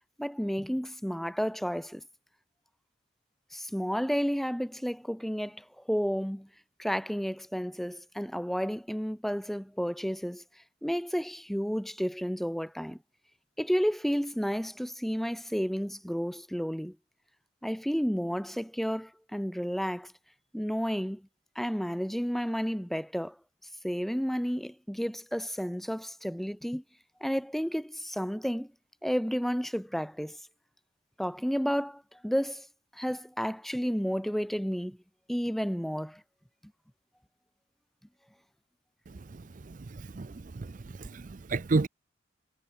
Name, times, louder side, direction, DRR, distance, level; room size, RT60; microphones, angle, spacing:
voice 1, 0.2-2.0 3.5-6.5 6.8-10.4 10.8-13.0 13.6-17.0 17.6-20.1 20.5-21.3 21.5-23.4 23.8-26.8 27.2-28.7 29.0-30.4 31.2-32.7 32.9-35.0 35.3-36.2, equal, ahead, 0.8 m, -31 dB
voice 2, 39.3-41.9, right 3 dB, 40° right, 0.5 m, -32 dB
head